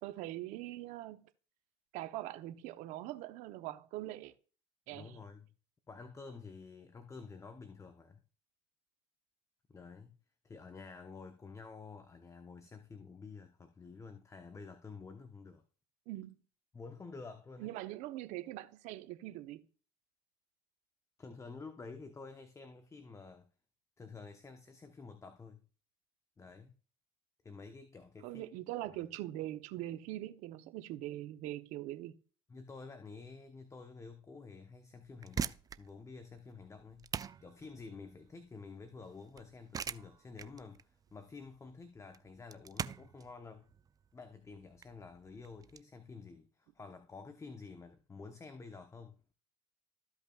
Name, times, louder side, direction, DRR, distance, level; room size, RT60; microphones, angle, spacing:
voice 1, 0.0-1.3 1.9-4.3 4.9-5.2 16.1-16.3 17.6-19.6 28.2-32.2, right 15 dB, 70° right, 0.9 m, -42 dB
voice 2, 4.9-5.5 5.9-8.2 9.7-10.2 10.4-15.6 16.7-17.7 21.2-23.5 24.0-25.6 26.4-26.8 27.4-28.4 28.9-29.1 32.5-37.1 37.4-43.7 44.1-49.2, left 4 dB, 25° left, 1.0 m, -50 dB
sound 1, 35.0-45.8, right 7 dB, 30° right, 0.5 m, -43 dB
14.5 x 5.4 x 2.4 m
hypercardioid pair, 75°, 13 cm